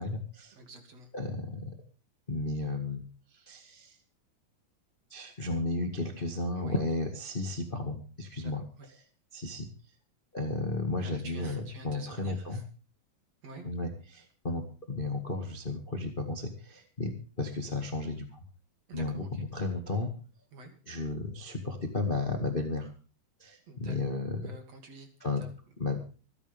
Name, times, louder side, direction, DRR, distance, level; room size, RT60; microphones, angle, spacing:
voice 1, 0.0-0.5 1.1-1.8 2.3-3.0 3.3-4.0 5.1-8.6 9.3-9.7 10.3-12.6 13.6-18.4 18.9-20.1 20.9-22.9 23.4-24.5 25.2-25.5 25.8-26.0, left 2 dB, 20° left, 4 dB, 1.4 m, -33 dB
voice 2, 0.5-1.1 6.6-6.8 8.4-8.5 8.8-8.9 11.0-12.6 13.4-13.6 18.9-19.4 20.5-20.7 23.7-24.0 24.4-25.1 25.4-25.5, right 2 dB, 50° right, 5 dB, 3.4 m, -48 dB
26.5 x 9.8 x 3.5 m, 0.37 s
omnidirectional pair, 4.1 m